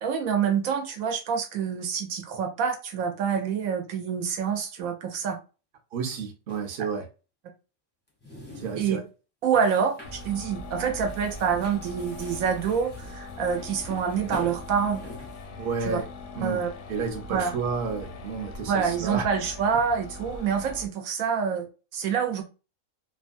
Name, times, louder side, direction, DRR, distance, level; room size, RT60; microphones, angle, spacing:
voice 1, 0.0-5.4 8.8-9.0 9.4-15.0 15.8-16.0 16.4-16.7 17.3-17.5 18.7-21.7 21.9-22.4, right 7 dB, 75° right, 1.0 m, -27 dB
voice 2, 5.9-7.0 8.6-9.0 15.6-16.1 16.3-16.6 16.9-19.3, right 5 dB, 50° right, 0.7 m, -31 dB
sound 1, 6.5-6.7 8.1-9.1 9.5-10.3 10.6-10.8 11.1-15.4, left 1 dB, 10° left, 0.5 m, -45 dB
sound 2, 10.0-20.9, left 2 dB, 65° left, 0.8 m, -41 dB
3.0 x 2.2 x 2.5 m
omnidirectional pair, 1.5 m